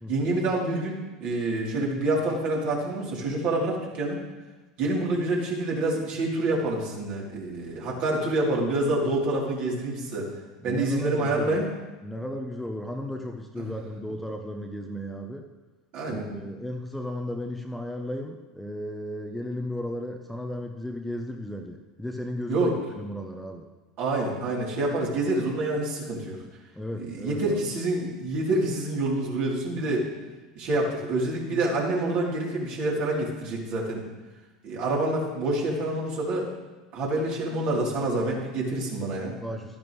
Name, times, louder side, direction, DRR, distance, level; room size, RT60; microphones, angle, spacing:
voice 1, 0.1-4.2 4.8-10.3 10.6-11.7 13.6-13.7 15.9-16.3 22.5-22.8 24.0-26.4 27.0-30.0 30.5-34.0 34.6-36.5 36.9-39.4, right 2 dB, 55° right, -3 dB, 3.4 m, -27 dB
voice 2, 10.6-11.6 12.0-15.5 16.1-23.7 26.7-27.6 39.4-39.8, left 1 dB, 5° left, 3 dB, 0.9 m, -35 dB
12.5 x 10.5 x 3.2 m, 1.2 s
hypercardioid pair, 80°, 3 cm